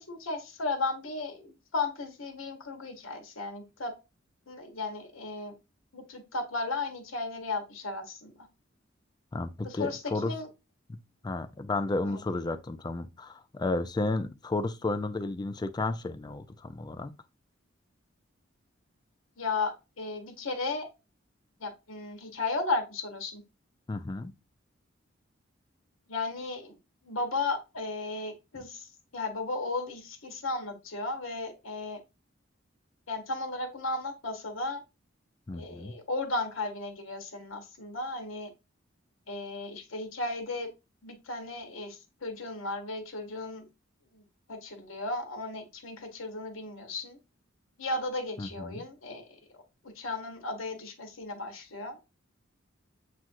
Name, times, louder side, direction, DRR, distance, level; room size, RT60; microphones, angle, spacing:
voice 1, 0.0-3.9 4.5-5.5 5.9-8.4 9.6-10.5 12.0-12.2 19.4-20.9 21.6-23.4 26.1-26.8 27.0-32.0 33.1-34.8 35.5-38.5 39.3-40.7 41.0-43.7 44.1-44.2 44.5-47.2 47.8-49.3 49.9-52.0, left 3 dB, 90° left, 1.1 m, -35 dB
voice 2, 9.3-10.4 10.9-11.0 11.2-17.1 23.9-24.3 35.5-36.0 48.4-48.8, left 2 dB, 20° left, 0.4 m, -32 dB
7.3 x 2.5 x 2.5 m
head